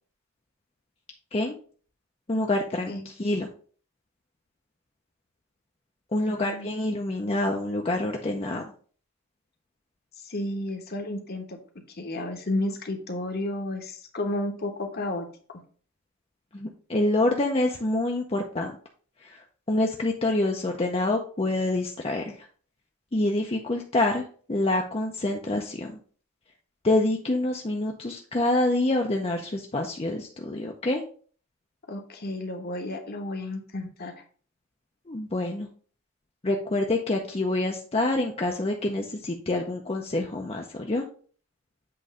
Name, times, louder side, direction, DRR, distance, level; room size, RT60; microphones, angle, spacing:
voice 1, 2.3-3.5 6.1-8.7 16.5-18.7 19.2-22.5 23.1-26.0 26.8-31.0 35.1-35.7 36.4-41.0, left 2 dB, 30° left, 1 dB, 0.6 m, -27 dB
voice 2, 6.3-6.7 10.2-11.6 12.0-15.6 31.9-34.1, left 1 dB, 50° left, 4 dB, 1.1 m, -32 dB
7.8 x 3.1 x 4.9 m, 0.43 s
head